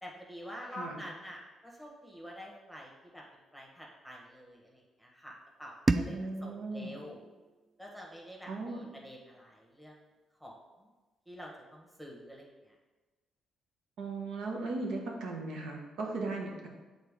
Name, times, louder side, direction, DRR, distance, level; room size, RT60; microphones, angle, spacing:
voice 1, 0.0-3.2 3.5-5.3 5.6-7.2 7.8-10.0 10.4-10.9 11.3-12.7, equal, ahead, -2 dB, 1.3 m, -47 dB
voice 2, 0.7-1.0 6.1-7.0 8.5-8.9 14.0-16.7, right 3 dB, 80° right, 0 dB, 1.1 m, -37 dB
sound 1, 5.9-8.8, right 2 dB, 25° right, 0.4 m, -35 dB
6.7 x 4.0 x 3.6 m, 1.2 s
cardioid pair, 90°, 0 cm